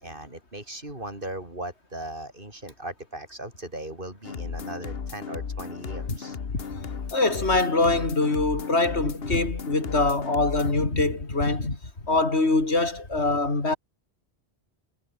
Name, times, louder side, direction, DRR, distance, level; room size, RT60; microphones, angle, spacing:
voice 1, 0.0-6.4, right 1 dB, 55° right, 5.8 m, -38 dB
sound 1, 4.2-10.7, left 6 dB, 65° left, 1.5 m, -35 dB
voice 2, 6.5-6.8 7.1-11.8 12.1-13.8, left 2 dB, 85° left, 3.9 m, -24 dB
omnidirectional pair, 1.1 m